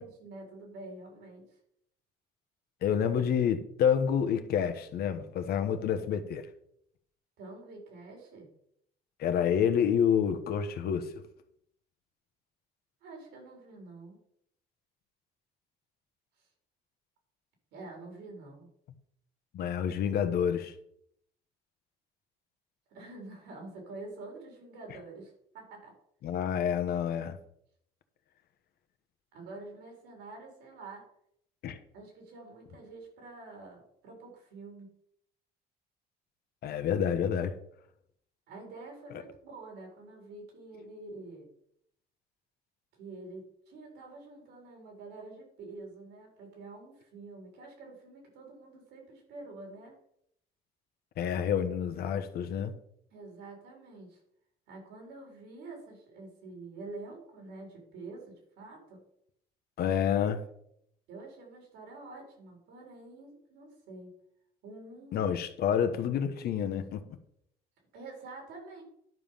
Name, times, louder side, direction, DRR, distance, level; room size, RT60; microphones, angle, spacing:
voice 1, 0.0-1.4 7.4-8.5 13.0-14.2 16.4-16.5 17.7-18.7 22.9-26.0 29.3-31.1 31.9-34.9 38.5-41.5 43.0-50.0 53.1-54.2 54.7-59.0 61.1-64.1 64.6-65.3 67.9-68.8, right 3 dB, 85° right, 4.0 m, -47 dB
voice 2, 2.8-6.5 9.2-11.1 19.5-20.7 26.2-27.4 31.6-31.8 36.6-37.5 39.1-39.2 51.2-52.7 59.8-60.4 65.1-67.0, left 8 dB, 65° left, 1.1 m, -28 dB
11.0 x 5.2 x 5.6 m
cardioid pair, 110°, 17 cm